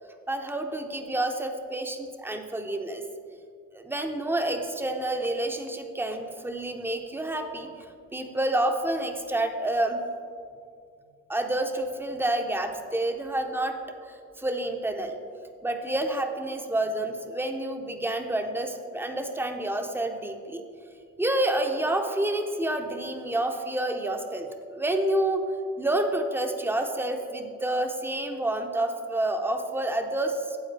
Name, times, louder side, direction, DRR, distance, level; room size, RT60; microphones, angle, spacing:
voice 1, 0.3-3.0 3.7-10.0 11.3-13.8 14.0-15.2 15.6-20.6 21.2-25.4 25.8-30.6, right 1 dB, 5° right, 5 dB, 0.7 m, -29 dB
9.5 x 7.6 x 3.3 m, 2.3 s
cardioid pair, 90°, 30 cm